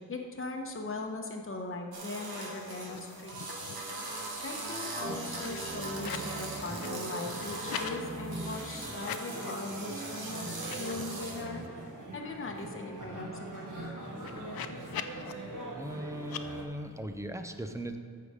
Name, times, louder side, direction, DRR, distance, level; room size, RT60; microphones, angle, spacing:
voice 1, 0.0-3.3 4.4-11.6 12.1-14.8, left 2 dB, 35° left, 2 dB, 1.0 m, -40 dB
sound 1, 1.9-11.5, right 2 dB, 75° right, 1.6 m, -41 dB
sound 2, 2.9-3.0 3.3-3.9 4.3-6.3 6.6-8.0 8.9-9.7 10.1-10.2 10.6-11.9 12.3-12.4 12.6-15.3 16.2-16.4, left 8 dB, 75° left, 0.5 m, -43 dB
sound 3, 5.0-16.6, right 2 dB, 55° right, 1.4 m, -41 dB
voice 2, 15.8-18.0, right 1 dB, 10° right, 7 dB, 0.6 m, -38 dB
14.0 x 5.0 x 5.0 m, 2.3 s
wide cardioid pair, 120°, 37 cm